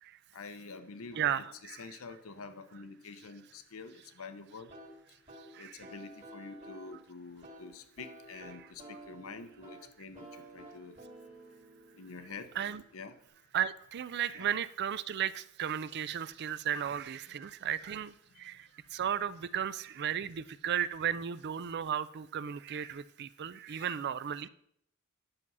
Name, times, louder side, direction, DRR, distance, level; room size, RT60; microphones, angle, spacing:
voice 1, 0.3-4.7 5.6-11.0 11.9-12.5 12.9-13.1 14.4-14.5 18.3-18.6 23.7-23.9, left 4 dB, 85° left, 11 dB, 0.8 m, -47 dB
voice 2, 1.1-2.0 5.5-5.9 8.5-8.7 12.6-12.8 13.5-24.5, right 9 dB, 50° right, 16 dB, 0.4 m, -35 dB
sound 1, 4.7-13.3, right 1 dB, 35° right, 2.1 m, -52 dB
9.8 x 6.1 x 5.5 m, 0.70 s
head